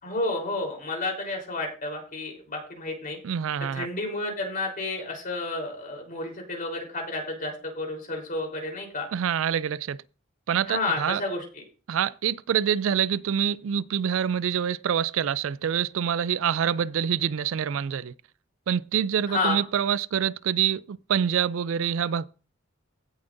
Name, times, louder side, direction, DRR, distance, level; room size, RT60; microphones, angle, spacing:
voice 1, 0.0-3.2 3.7-9.1 10.7-11.6 19.3-19.6, left 2 dB, 45° left, 3.7 m, -31 dB
voice 2, 3.2-3.9 9.1-10.0 10.5-11.2 11.9-18.1 18.7-22.3, right 8 dB, 70° right, 0.4 m, -26 dB
16.5 x 7.1 x 2.6 m
head